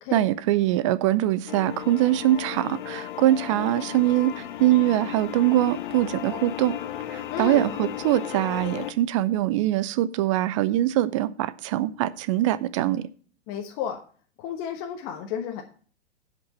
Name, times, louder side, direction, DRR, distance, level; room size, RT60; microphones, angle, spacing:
voice 1, 0.1-6.8 7.1-13.1, right 14 dB, 30° right, 0.5 m, -23 dB
sound 1, 1.5-8.9, left 12 dB, 50° left, 0.8 m, -35 dB
voice 2, 7.3-7.7 13.5-14.0 14.4-15.6, left 8 dB, 30° left, 1.2 m, -32 dB
8.2 x 8.0 x 5.4 m
figure-of-eight pair, 105°, 34 cm